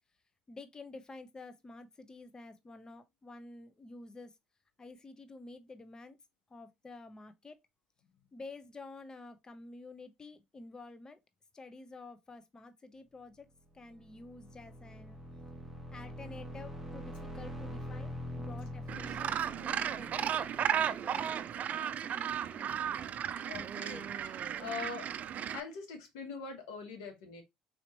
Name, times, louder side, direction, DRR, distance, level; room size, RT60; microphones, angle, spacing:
voice 1, 0.5-4.4 4.8-6.2 6.5-7.6 8.3-11.2 11.5-13.5 13.7-15.2 15.9-19.3 19.6-21.5 21.7-22.7, left 3 dB, 20° left, 0.5 m, -50 dB
sound 1, 13.7-21.5, left 1 dB, 5° right, 1.1 m, -44 dB
Gull seagull, 18.9-25.6, right 9 dB, 50° right, 0.4 m, -35 dB
voice 2, 23.5-25.1 25.5-27.4, left 5 dB, 90° left, 1.1 m, -43 dB
4.1 x 2.9 x 2.7 m
supercardioid pair, 80°, 3 cm